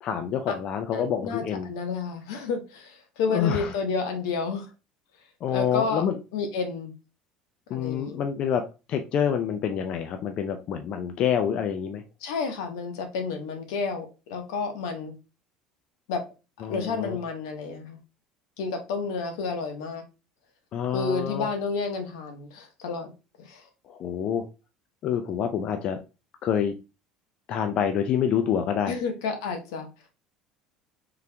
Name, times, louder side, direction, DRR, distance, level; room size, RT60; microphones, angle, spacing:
voice 1, 0.0-1.7 3.3-3.7 5.4-6.2 7.7-8.6 8.9-12.0 16.6-17.2 20.7-21.5 23.9-24.4 25.0-26.0 26.4-26.7 27.5-28.9, left 8 dB, 45° left, 0.5 m, -27 dB
voice 2, 0.9-4.7 5.5-6.0 6.3-6.9 7.7-8.2 12.2-15.2 16.1-16.2 16.7-18.0 18.6-20.0 20.9-23.1 23.4-23.6 28.9-29.9, left 4 dB, 90° left, 1.0 m, -30 dB
3.8 x 2.9 x 3.3 m
cardioid pair, 130°, 2 cm